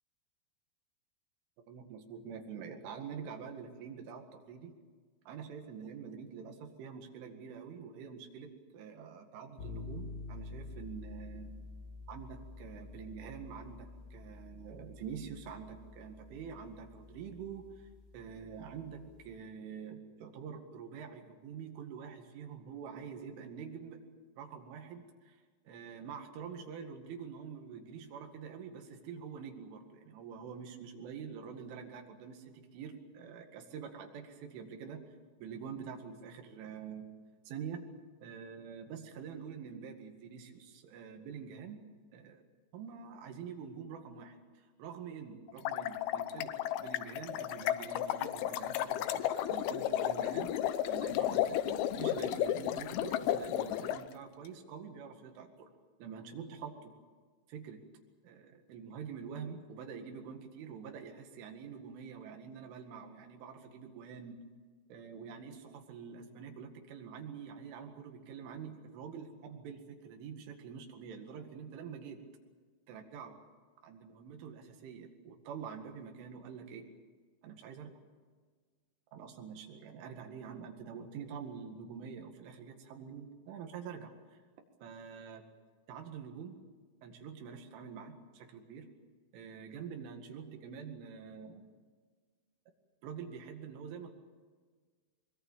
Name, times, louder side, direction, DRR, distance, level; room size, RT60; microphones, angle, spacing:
voice 1, 1.7-4.8 5.3-11.5 12.1-17.9 18.1-24.0 24.4-25.4 25.7-35.1 35.4-37.1 37.5-37.9 38.2-41.8 42.1-42.5 42.7-50.5 50.8-55.7 56.0-56.9 57.5-57.8 58.2-64.4 64.9-72.2 72.9-73.4 73.8-76.9 77.4-77.9 79.1-84.4 84.8-85.4 85.9-86.6 87.0-88.9 89.3-91.6 93.0-94.1, right 6 dB, 80° right, 4 dB, 4.5 m, -46 dB
sound 1, 9.6-19.4, left 3 dB, 60° left, 6.1 m, -49 dB
sound 2, 45.5-54.0, left 12 dB, 85° left, 2.2 m, -33 dB
24.0 x 22.0 x 7.4 m, 1.5 s
omnidirectional pair, 5.6 m